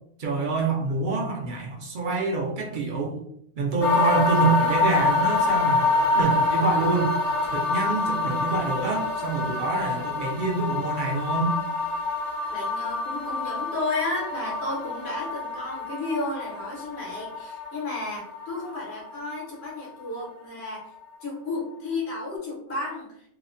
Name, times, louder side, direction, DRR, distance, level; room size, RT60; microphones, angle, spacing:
voice 1, 0.2-3.2 3.6-7.1 7.4-11.6, right 4 dB, 60° right, 0 dB, 0.6 m, -26 dB
sound 1, 3.8-19.8 20.1-20.2, left 3 dB, 45° left, 0.7 m, -26 dB
voice 2, 12.5-20.9 21.2-23.1, left 2 dB, 80° left, -4 dB, 1.2 m, -32 dB
2.8 x 2.0 x 2.4 m, 0.71 s
omnidirectional pair, 1.1 m